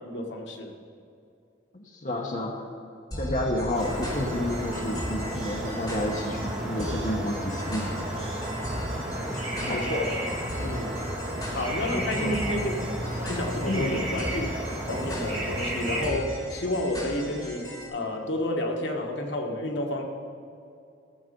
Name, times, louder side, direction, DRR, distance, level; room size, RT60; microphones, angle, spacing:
voice 1, 0.0-0.7 9.6-10.2 10.6-11.0 11.5-12.7 13.2-14.5 14.8-20.0, left 1 dB, 75° left, 2 dB, 1.3 m, -30 dB
voice 2, 1.7-2.7 3.2-8.1 9.3-9.8 12.1-12.4 13.7-14.0, left 1 dB, 40° left, 0 dB, 0.9 m, -30 dB
sound 1, 3.1-17.9, equal, 20° left, 3.4 m, -38 dB
sound 2, 3.7-16.1, right 1 dB, 35° right, 1.8 m, -32 dB
15.0 x 7.1 x 5.1 m, 2.5 s
head